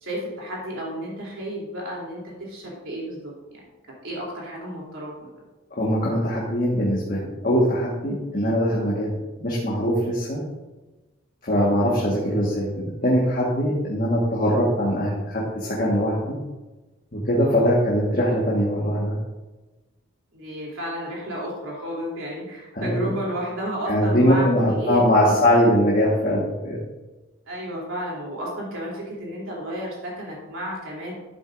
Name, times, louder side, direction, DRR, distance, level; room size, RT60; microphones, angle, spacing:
voice 1, 0.0-3.7 4.0-5.1 8.3-8.6 11.5-11.7 17.4-17.7 20.3-25.4 27.5-31.1, equal, 85° right, -3 dB, 3.2 m, -32 dB
voice 2, 5.7-10.4 11.4-16.4 17.1-19.2 22.7-23.2 23.9-26.8, equal, 45° left, -5 dB, 1.5 m, -22 dB
11.5 x 7.7 x 2.6 m, 1.2 s
head